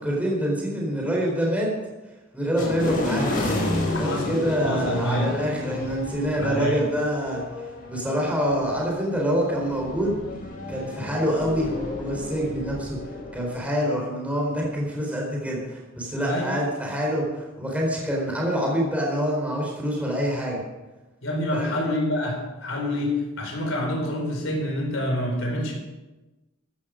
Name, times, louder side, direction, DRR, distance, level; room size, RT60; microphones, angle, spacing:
voice 1, 0.0-1.7 2.3-3.3 4.0-7.4 7.9-10.2 10.7-13.0 13.3-20.6 21.5-21.7, equal, 5° right, -2 dB, 4.1 m, -26 dB
sound 1, 2.6-13.6, left 2 dB, 45° left, 5.0 m, -31 dB
voice 2, 3.9-4.4 4.6-5.3 6.3-6.7 16.2-16.5 21.2-25.7, left 1 dB, 75° left, 0 dB, 4.7 m, -27 dB
15.0 x 13.0 x 5.1 m, 1.1 s
head